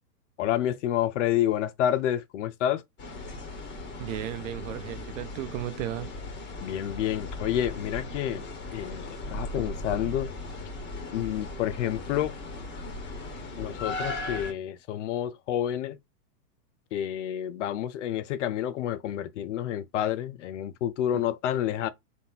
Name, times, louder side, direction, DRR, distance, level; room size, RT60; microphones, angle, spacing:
voice 1, 0.4-2.8 6.6-8.5 8.7-10.3 11.1-12.3 13.6-16.0 16.9-21.9, left 11 dB, 50° left, 0.6 m, -29 dB
sound 1, 3.0-14.5, left 2 dB, 20° left, 1.6 m, -37 dB
voice 2, 4.0-6.1, right 13 dB, 50° right, 0.8 m, -34 dB
4.1 x 3.7 x 2.8 m
hypercardioid pair, 135°, 49 cm